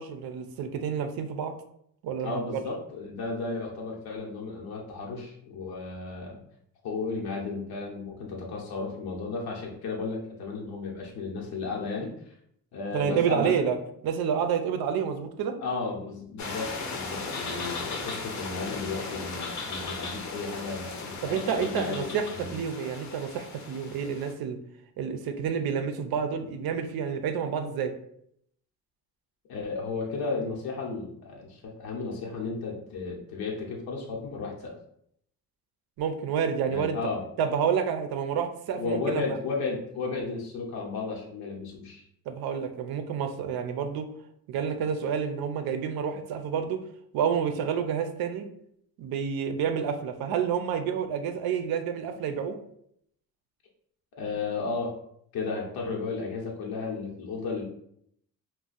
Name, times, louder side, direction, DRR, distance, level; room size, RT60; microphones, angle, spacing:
voice 1, 0.0-1.5 2.0-2.6 12.9-13.8 14.0-15.6 21.2-24.6 25.0-27.9 36.0-37.0 37.4-39.4 42.3-44.1 44.5-46.8 47.1-48.4 49.0-52.6, right 7 dB, 85° right, 8 dB, 0.5 m, -29 dB
voice 2, 2.2-6.4 6.8-12.1 12.7-13.5 15.6-21.9 22.3-22.6 29.5-34.8 36.7-37.2 38.8-42.0 54.2-54.9 55.3-57.6, left 4 dB, 90° left, -1 dB, 0.9 m, -34 dB
sound 1, 16.4-24.3, left 4 dB, 50° left, 0.6 m, -37 dB
2.5 x 2.2 x 3.9 m, 0.71 s
cardioid pair, 115°, 36 cm